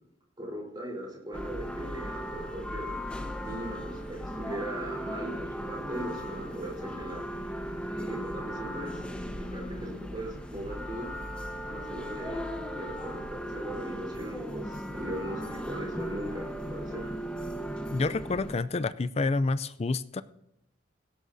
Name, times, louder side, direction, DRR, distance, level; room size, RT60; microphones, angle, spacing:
voice 1, 0.4-3.0 3.4-7.4 8.0-9.0 9.5-11.1 11.7-17.2, right 1 dB, 25° right, -1 dB, 3.8 m, -39 dB
sound 1, 1.3-18.6, equal, 5° left, 1.1 m, -37 dB
voice 2, 17.9-20.2, left 3 dB, 35° left, 15 dB, 0.4 m, -28 dB
18.0 x 16.0 x 2.7 m, 0.80 s
head